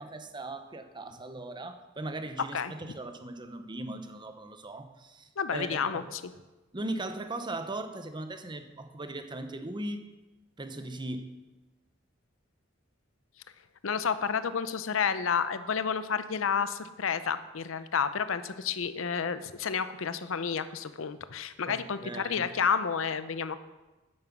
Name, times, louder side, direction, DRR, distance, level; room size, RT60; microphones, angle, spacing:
voice 1, 0.0-6.1 6.7-10.0 10.6-11.3 21.7-22.4, right 2 dB, 25° right, 8 dB, 0.8 m, -39 dB
voice 2, 5.4-6.3 13.8-23.6, left 6 dB, 75° left, 13 dB, 0.6 m, -30 dB
9.6 x 9.0 x 6.0 m, 1.1 s
head